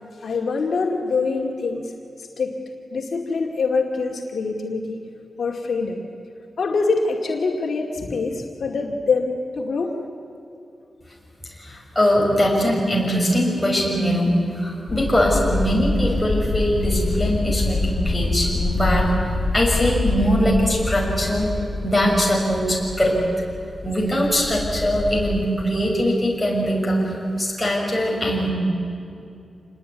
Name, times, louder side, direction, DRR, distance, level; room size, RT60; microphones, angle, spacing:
voice 1, 0.2-1.9 2.4-2.5 2.9-5.0 5.4-6.0 6.6-9.9, left 4 dB, 65° left, 1 dB, 2.3 m, -24 dB
voice 2, 11.6-21.5 21.8-23.1 23.8-27.1 27.4-28.5, equal, 5° left, -3 dB, 6.5 m, -21 dB
sound 1, 14.9-25.3, left 3 dB, 45° left, 4.2 m, -26 dB
27.5 x 20.5 x 9.6 m, 2.6 s
wide cardioid pair, 155°, 0 cm